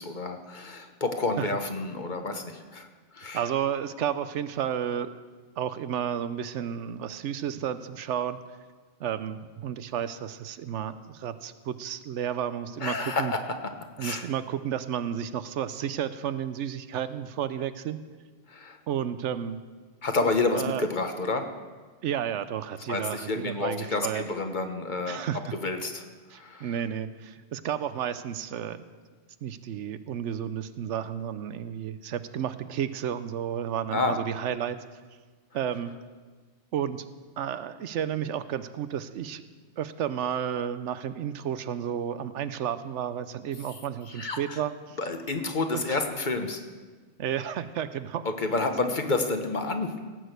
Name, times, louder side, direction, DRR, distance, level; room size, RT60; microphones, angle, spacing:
voice 1, 0.0-2.9 3.1-3.5 12.8-13.4 14.0-14.2 18.5-18.8 20.0-21.5 22.9-25.2 25.5-26.1 26.3-26.7 33.9-34.2 44.1-44.6 45.0-46.6 48.2-49.9, left 3 dB, 45° left, 6 dB, 1.1 m, -29 dB
voice 2, 3.3-5.2 5.6-8.4 9.0-13.3 14.0-18.0 18.9-19.6 20.5-20.8 22.0-24.2 25.1-25.5 26.3-28.9 29.4-34.8 35.5-35.9 36.7-37.0 37.4-39.4 39.8-45.0 45.7-46.0 47.2-48.3, right 9 dB, 80° right, 13 dB, 1.0 m, -32 dB
17.0 x 6.3 x 7.9 m, 1.4 s
omnidirectional pair, 1.2 m